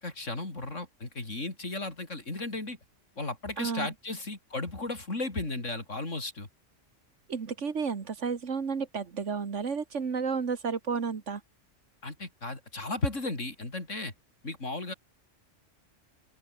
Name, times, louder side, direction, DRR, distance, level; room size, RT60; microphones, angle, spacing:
voice 1, 0.0-2.8 3.2-6.5 12.0-14.1 14.4-14.9, left 2 dB, 75° left, 4.8 m, -35 dB
voice 2, 3.6-3.9 7.3-11.4, right 5 dB, 70° right, 1.9 m, -32 dB
open air
omnidirectional pair, 1.3 m